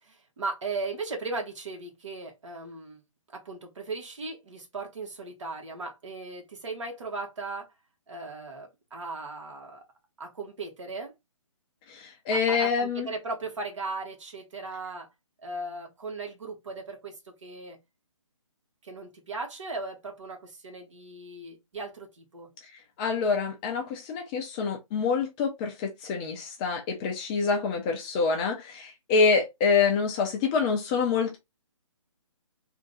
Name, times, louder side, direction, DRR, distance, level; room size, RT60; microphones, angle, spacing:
voice 1, 0.0-3.0 3.3-7.7 8.1-9.8 10.2-11.1 12.3-15.1 15.4-17.8 18.8-22.5, right 3 dB, 65° right, 1.8 m, -37 dB
voice 2, 11.9-13.1 23.0-31.4, left 5 dB, 15° left, 0.4 m, -26 dB
3.6 x 2.6 x 3.8 m
hypercardioid pair, 155°, 17 cm